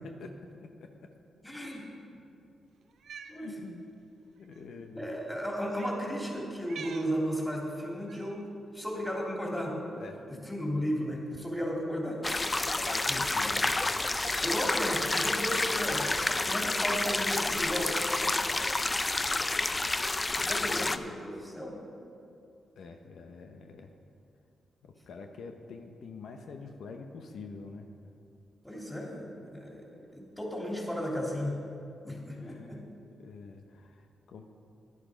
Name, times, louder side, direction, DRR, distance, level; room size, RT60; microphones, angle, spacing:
voice 1, 0.6-1.1 3.3-3.9 4.4-5.1 9.7-10.2 12.8-13.7 14.2-14.4 20.4-21.2 22.8-23.9 25.1-28.1 32.3-32.8 33.2-34.4, left 4 dB, 75° left, 4 dB, 0.8 m, -46 dB
voice 2, 1.4-1.8 3.3-3.5 4.7-8.4 8.7-9.8 10.3-12.2 13.1-13.2 14.4-16.1 16.4-18.0 20.5-21.8 28.6-31.6 32.0-32.8, equal, 5° left, -2 dB, 3.2 m, -34 dB
Cat, 2.9-3.4 4.4-4.6 5.7-6.0 6.6-7.1 8.1-8.4, right 6 dB, 70° right, 0.6 m, -46 dB
sound 1, 12.2-21.0, left 2 dB, 25° left, 0.6 m, -29 dB
11.0 x 11.0 x 5.1 m, 2.6 s
cardioid pair, 65°, 0 cm